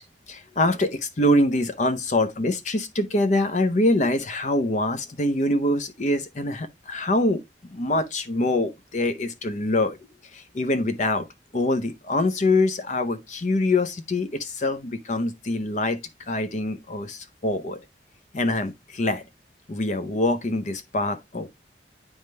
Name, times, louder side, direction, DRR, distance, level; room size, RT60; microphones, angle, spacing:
voice 1, 0.3-7.4 7.7-10.0 10.3-11.3 11.5-16.0 16.3-17.8 18.3-19.2 19.7-21.5, left 1 dB, 45° left, 0.6 m, -24 dB
9.2 x 3.6 x 3.2 m
head